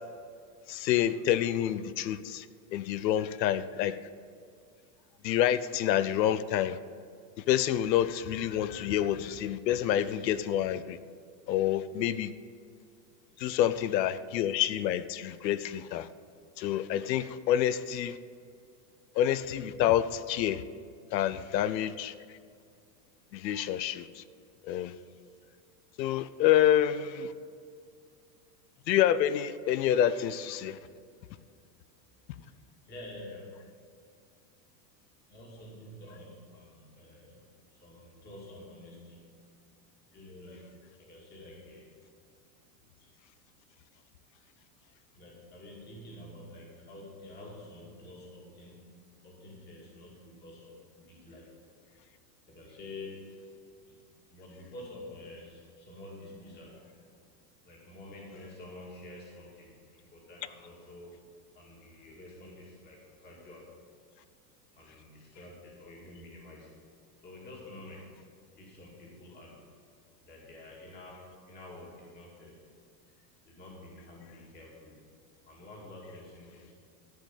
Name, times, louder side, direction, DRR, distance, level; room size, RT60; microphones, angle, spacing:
voice 1, 0.7-2.5 2.7-4.0 5.2-6.8 7.5-11.0 11.5-12.3 13.4-16.1 16.6-18.2 19.1-20.6 21.1-22.1 23.3-24.2 24.6-24.9 26.0-27.3 28.9-30.8, left 11 dB, 80° left, 15 dB, 0.8 m, -28 dB
voice 2, 32.8-33.7 35.3-39.5 40.1-41.9 43.0-43.1 45.1-51.5 51.8-52.0 52.5-53.3 53.8-54.0 54.3-57.1 57.6-61.2 61.5-63.7 64.7-66.8 67.2-68.3 68.5-69.6 70.2-72.6 73.0-75.0 75.4-76.7, left 1 dB, 20° left, -3 dB, 2.4 m, -49 dB
14.0 x 5.3 x 8.3 m, 2.3 s
supercardioid pair, 165°, 50 cm